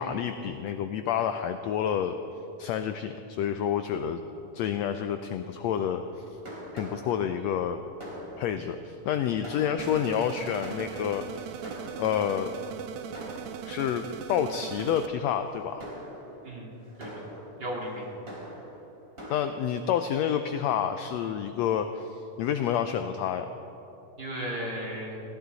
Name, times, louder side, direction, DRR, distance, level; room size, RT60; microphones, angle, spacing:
voice 1, 0.0-2.2 2.6-4.2 4.5-6.0 6.7-7.8 8.4-11.6 12.0-12.5 13.6-14.0 14.3-15.8 19.3-23.5, left 9 dB, 85° left, 8 dB, 1.5 m, -29 dB
Fireworks, 6.0-12.5 13.1-14.0 14.6-14.9 15.4-19.6, equal, 20° right, 3.3 m, -44 dB
sound 1, 9.8-15.1, right 9 dB, 75° right, 1.7 m, -39 dB
voice 2, 16.4-17.2 17.6-18.1 24.2-25.2, equal, 35° right, -3 dB, 2.8 m, -35 dB
19.5 x 16.5 x 4.0 m, 3.0 s
omnidirectional pair, 3.6 m